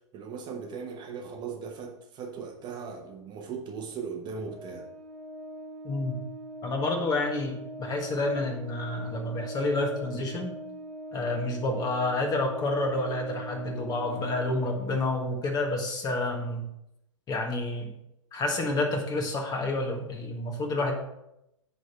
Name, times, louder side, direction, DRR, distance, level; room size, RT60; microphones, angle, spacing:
voice 1, 0.1-4.9, right 5 dB, 30° right, 0.9 m, -38 dB
Organ, 4.5-15.2, right 1 dB, ahead, 1.4 m, -42 dB
voice 2, 5.8-6.2 6.6-10.6 11.1-16.6 17.3-17.9 18.3-20.9, left 2 dB, 25° left, 1.5 m, -29 dB
9.2 x 3.6 x 5.4 m
hypercardioid pair, 115°, 16 cm